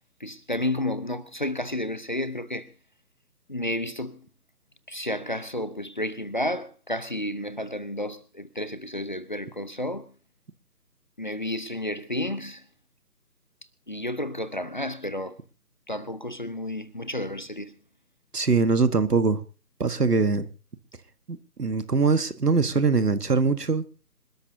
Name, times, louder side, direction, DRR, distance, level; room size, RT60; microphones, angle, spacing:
voice 1, 0.2-2.7 3.5-4.2 4.9-10.0 11.2-12.6 13.9-15.4 15.9-17.7, left 1 dB, 30° left, 0.8 m, -31 dB
voice 2, 18.3-19.4 19.8-20.5 21.3-23.8, right 4 dB, 75° right, 1.5 m, -22 dB
26.5 x 13.0 x 2.8 m
figure-of-eight pair, 155°, 48 cm